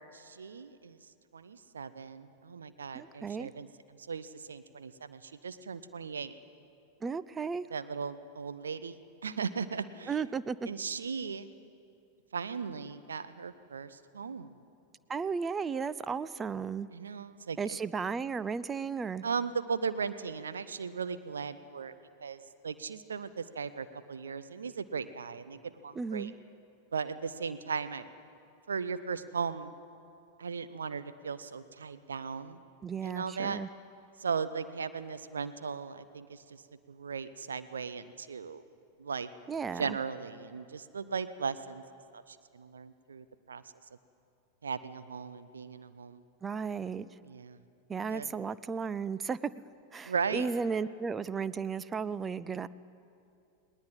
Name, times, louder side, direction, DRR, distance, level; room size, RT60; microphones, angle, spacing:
voice 1, 0.1-1.0 1.3-3.7 4.1-6.3 7.7-9.0 9.2-10.1 10.7-11.5 12.3-14.6 16.9-17.6 19.2-21.9 22.2-26.3 26.9-28.1 28.7-29.7 30.4-32.6 33.0-33.6 34.2-36.6 36.9-38.6 39.0-39.3 39.8-41.8 42.1-43.6 44.6-46.2 47.3-47.6 48.1-48.3 50.0-50.5, right 5 dB, 70° right, 12 dB, 0.8 m, -37 dB
voice 2, 2.9-3.5 7.0-7.7 10.1-10.7 15.1-16.9 17.6-19.2 26.0-26.3 32.8-33.7 39.5-40.0 46.4-47.1 47.9-49.4 49.9-52.7, right 5 dB, 15° right, 15 dB, 0.5 m, -34 dB
20.0 x 18.5 x 8.9 m, 2.5 s
figure-of-eight pair, 90°, 0 cm